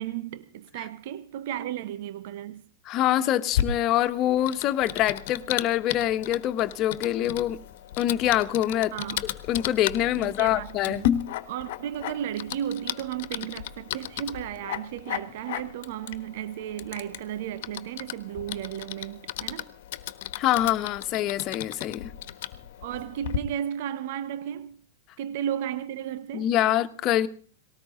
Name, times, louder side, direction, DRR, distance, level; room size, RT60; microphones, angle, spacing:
voice 1, 0.0-2.6 8.9-9.3 10.2-11.2 11.5-19.7 22.8-24.8 25.2-26.5, right 10 dB, 60° right, 1.1 m, -34 dB
voice 2, 2.8-7.6 8.0-8.9 9.5-11.0 20.4-22.1 26.3-27.3, left 12 dB, 40° left, 1.4 m, -25 dB
Typing, 3.5-23.4, left 11 dB, 60° left, 1.3 m, -35 dB
19.5 x 18.5 x 3.9 m
hypercardioid pair, 100°, 0 cm